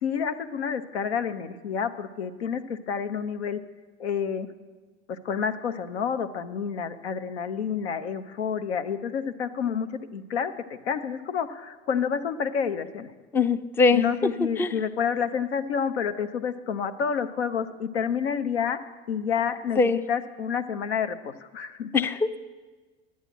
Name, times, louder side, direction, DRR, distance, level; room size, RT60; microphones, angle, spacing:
voice 1, 0.0-3.6 4.0-4.5 5.1-13.1 13.9-18.8 19.1-19.8 20.1-21.9, left 7 dB, 85° left, 10 dB, 0.8 m, -29 dB
voice 2, 13.3-14.0 14.6-14.7 19.8-20.0 21.9-22.4, left 4 dB, 5° left, 13 dB, 0.4 m, -21 dB
11.0 x 8.3 x 7.6 m, 1.3 s
hypercardioid pair, 85°, 32 cm